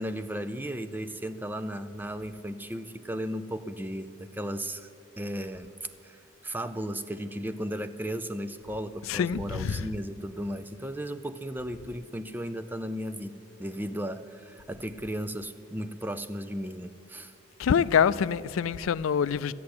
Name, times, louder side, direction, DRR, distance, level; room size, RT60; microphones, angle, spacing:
voice 1, 0.0-4.9 5.2-5.7 6.0-17.3, equal, 10° right, 0.4 m, -35 dB
voice 2, 9.1-9.8 17.6-19.5, left 7 dB, 80° left, 0.4 m, -25 dB
13.0 x 8.6 x 9.5 m
head